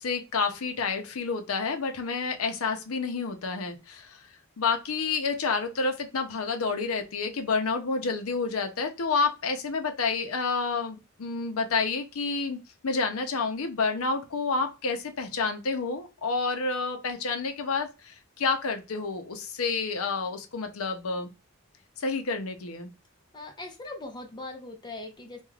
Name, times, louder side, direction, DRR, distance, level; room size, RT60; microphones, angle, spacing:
voice 1, 0.0-4.2 4.6-12.6 12.8-21.3 22.0-22.9, left 4 dB, 80° left, 0.6 m, -29 dB
voice 2, 23.3-25.4, left 2 dB, 20° left, 0.5 m, -40 dB
2.3 x 2.3 x 3.1 m
head